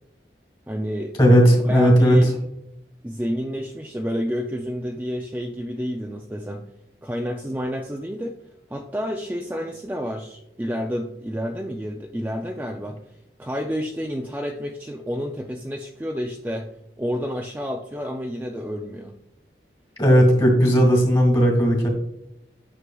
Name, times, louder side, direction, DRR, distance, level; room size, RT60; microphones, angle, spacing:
voice 1, 0.7-1.2 1.5-2.3 3.0-6.6 7.0-8.4 8.7-13.0 13.4-16.7 17.0-19.1, equal, 10° right, 2 dB, 0.3 m, -29 dB
voice 2, 1.2-2.2 20.0-21.9, equal, 25° left, 0 dB, 1.7 m, -16 dB
9.6 x 6.2 x 2.3 m, 0.81 s
head